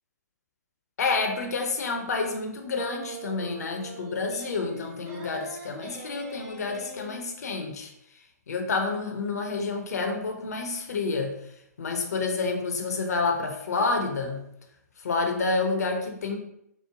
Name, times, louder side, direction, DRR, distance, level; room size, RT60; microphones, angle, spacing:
voice 1, 1.0-7.9 8.5-11.4 11.8-14.4 15.0-16.4, left 3 dB, 60° left, 3 dB, 0.6 m, -29 dB
sound 1, 2.7-7.2, right 2 dB, 35° right, 0.7 m, -42 dB
3.1 x 2.0 x 3.4 m, 0.78 s
figure-of-eight pair, 120°, 9 cm